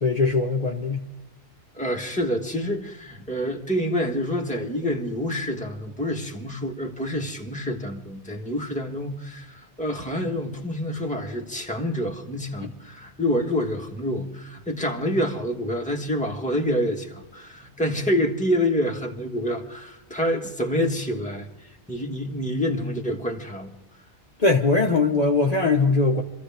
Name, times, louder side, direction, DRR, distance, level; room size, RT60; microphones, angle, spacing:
voice 1, 0.0-1.0 12.6-12.7 24.4-26.2, left 3 dB, 40° left, 1 dB, 1.1 m, -21 dB
voice 2, 1.7-21.5 21.9-23.7, equal, 5° left, 1 dB, 1.4 m, -27 dB
26.0 x 15.0 x 3.5 m, 0.93 s
omnidirectional pair, 1.1 m